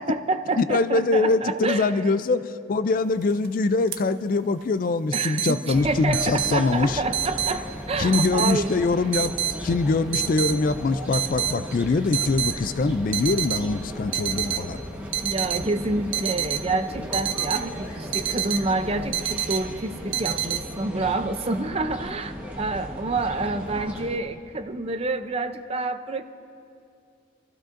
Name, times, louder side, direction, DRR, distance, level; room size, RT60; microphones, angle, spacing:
voice 1, 0.0-1.9 5.1-8.8 15.2-26.2, right 3 dB, 30° right, 9 dB, 0.5 m, -28 dB
voice 2, 0.6-7.0 8.0-9.3 9.6-14.8, left 3 dB, 45° left, 13 dB, 0.3 m, -23 dB
sound 1, 3.2-3.5 3.9-4.0 5.1-5.6 6.1-6.6 7.1-7.6 8.1-8.6 9.1-9.6 10.1-10.6 11.1-11.6 12.1-12.6 13.1-13.6 14.1-14.6 15.1-15.6 16.1-16.6 17.1-17.6 18.1-18.6 19.1-19.6 20.1-20.6, right 11 dB, 75° right, 0.6 m, -27 dB
sound 2, 5.7-24.2, equal, 10° right, 1.2 m, -36 dB
Bird vocalization bird call bird song, 6.7-7.1 7.4-7.8 8.6-8.7 9.4-9.5 10.0-10.1 10.3-10.4 11.4-12.1 12.4-12.8 13.8-14.1 17.8-18.8 19.9-20.3, left 3 dB, 90° left, 1.9 m, -52 dB
29.0 x 15.0 x 2.6 m, 2.4 s
head